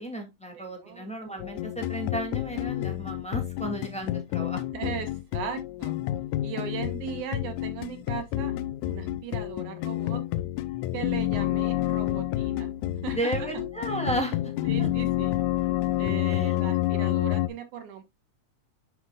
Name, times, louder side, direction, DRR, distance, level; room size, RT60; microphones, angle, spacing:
voice 1, 0.0-4.6 13.1-14.9 16.2-16.5, right 1 dB, 5° left, 1.6 m, -34 dB
voice 2, 0.5-1.1 4.7-6.0 6.4-8.6 8.9-10.2 10.9-12.7 13.0-13.6 14.6-15.4 16.0-18.0, right 8 dB, 90° right, 2.9 m, -38 dB
sound 1, 1.4-17.5, left 14 dB, 85° left, 2.0 m, -29 dB
10.5 x 5.8 x 2.3 m
omnidirectional pair, 3.4 m